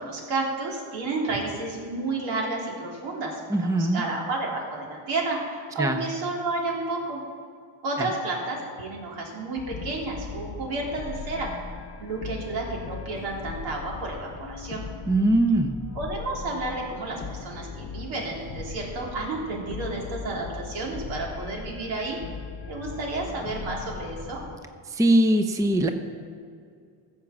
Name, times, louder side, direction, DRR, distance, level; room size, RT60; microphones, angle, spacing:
voice 1, 0.0-7.2 7.8-11.5 12.0-14.8 16.0-22.2 22.7-24.4, right 2 dB, 75° right, -2 dB, 3.6 m, -31 dB
voice 2, 3.5-4.0 5.8-6.0 8.0-8.1 15.1-15.8 24.9-25.9, right 1 dB, 5° right, 6 dB, 0.6 m, -21 dB
sound 1, 9.6-24.6, left 5 dB, 30° left, 0.8 m, -39 dB
14.0 x 7.3 x 7.3 m, 2.2 s
cardioid pair, 125°, 46 cm